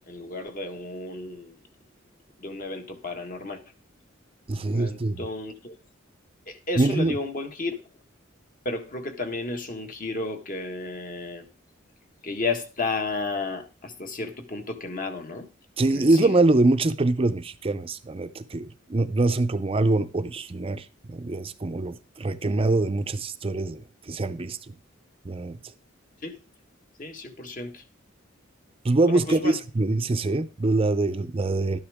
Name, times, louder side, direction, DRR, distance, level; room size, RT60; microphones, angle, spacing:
voice 1, 0.0-1.5 2.4-3.6 4.7-5.8 6.5-7.8 8.6-11.5 12.2-15.5 15.9-16.4 26.2-26.4 27.0-27.8 29.1-29.6, left 3 dB, 45° left, 1.5 m, -32 dB
voice 2, 4.5-5.3 6.8-7.1 15.8-24.6 25.3-25.6 28.8-31.8, right 2 dB, 30° right, 0.5 m, -24 dB
12.5 x 9.9 x 3.5 m
head